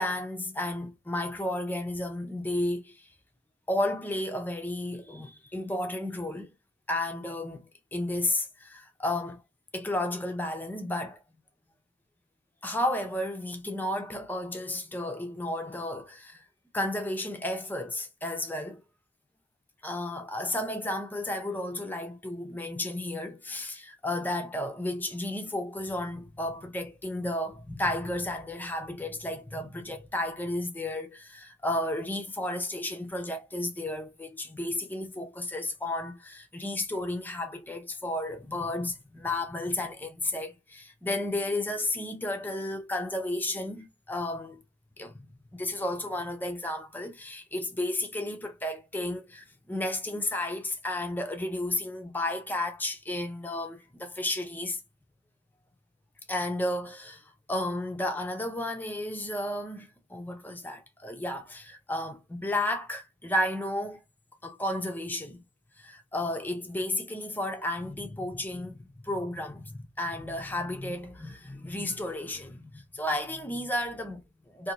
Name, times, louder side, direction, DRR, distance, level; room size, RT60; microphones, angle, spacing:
voice 1, 0.0-3.1 3.7-6.5 6.9-9.4 9.7-11.2 12.6-16.4 16.7-18.8 19.8-44.6 45.0-54.8 56.3-64.0 64.4-65.4 65.8-74.7, left 1 dB, 10° left, 0.5 m, -33 dB
2.7 x 2.6 x 3.9 m
head